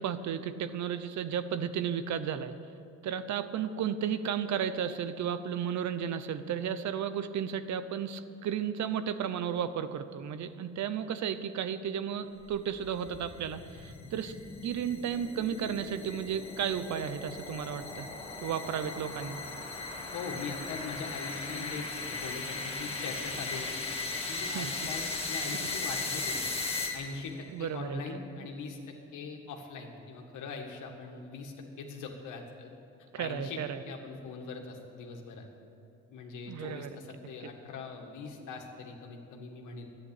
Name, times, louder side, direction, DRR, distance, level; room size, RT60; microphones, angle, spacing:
voice 1, 0.0-2.6 3.0-14.3 14.6-18.1 18.4-19.4 24.4-24.9 25.5-25.7 27.5-28.2 33.1-33.8 36.5-36.9 37.4-37.5, right 8 dB, 65° right, 12 dB, 0.8 m, -33 dB
sound 1, 12.5-27.3, left 3 dB, 20° left, 2.0 m, -37 dB
voice 2, 20.1-23.9 24.3-26.5 26.9-32.7 33.2-33.6 33.8-35.5 36.1-39.9, left 4 dB, 85° left, 2 dB, 2.0 m, -41 dB
12.0 x 9.8 x 8.4 m, 2.7 s
cardioid pair, 90°, 30 cm